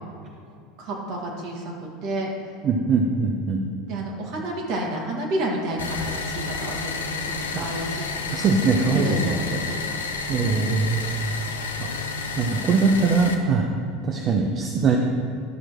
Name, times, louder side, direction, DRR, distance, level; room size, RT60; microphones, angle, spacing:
voice 1, 0.8-2.3 3.9-8.5 8.9-9.8, right 1 dB, 60° right, -1 dB, 1.9 m, -30 dB
voice 2, 2.6-3.6 7.5-7.7 8.3-9.6 10.3-11.3 11.8-11.9 12.4-13.7 14.0-15.0, right 4 dB, 40° right, 2 dB, 0.7 m, -22 dB
sound 1, 5.8-13.3, left 4 dB, 90° left, 0.7 m, -31 dB
12.5 x 6.2 x 3.0 m, 2.4 s
hypercardioid pair, 90°, 0 cm